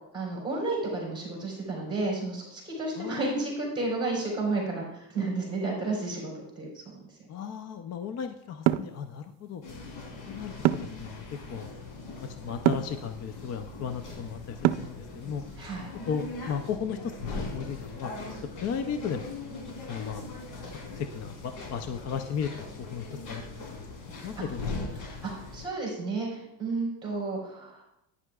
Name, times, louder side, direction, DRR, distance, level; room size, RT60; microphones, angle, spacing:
voice 1, 0.1-6.9 15.6-15.9 24.4-24.5 25.0-27.8, right 3 dB, 10° right, -3 dB, 3.7 m, -32 dB
voice 2, 3.0-3.4 7.3-9.6 10.3-11.2 11.5-11.7 12.2-15.4 16.1-18.1 18.6-19.3 19.9-20.4 21.0-23.8 24.2-24.7, left 7 dB, 40° left, 8 dB, 0.4 m, -35 dB
sound 1, 8.7-8.9 10.6-11.0 12.6-12.9 14.6-15.0, right 14 dB, 80° right, 0.5 m, -24 dB
sound 2, 9.6-25.7, left 3 dB, 75° left, 3.3 m, -40 dB
11.0 x 9.7 x 2.3 m, 0.83 s
cardioid pair, 155°, 44 cm